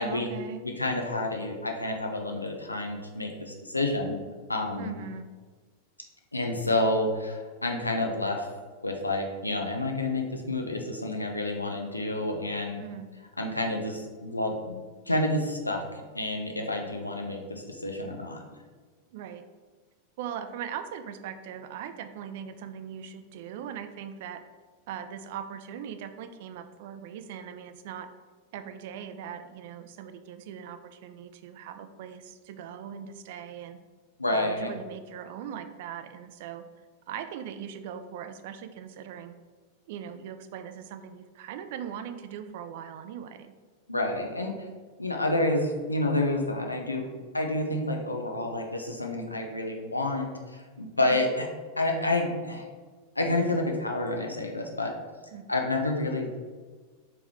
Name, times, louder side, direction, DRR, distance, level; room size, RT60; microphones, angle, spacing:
voice 1, 0.0-0.6 4.8-5.3 12.8-13.1 19.1-19.4 20.2-24.4 24.9-28.1 28.5-33.8 34.3-36.7 37.1-39.3 39.9-43.5 51.0-51.3 55.3-55.5, right 8 dB, 50° right, 9 dB, 0.3 m, -40 dB
voice 2, 0.6-4.2 4.5-4.9 6.3-8.5 8.8-12.8 13.4-14.8 15.1-15.8 16.1-18.4 34.2-34.7 43.9-44.5 45.0-51.5 51.8-52.6 53.2-54.9 55.5-56.4, left 2 dB, 85° left, 2 dB, 0.6 m, -29 dB
4.7 x 3.0 x 3.5 m, 1.4 s
figure-of-eight pair, 90°, 0 cm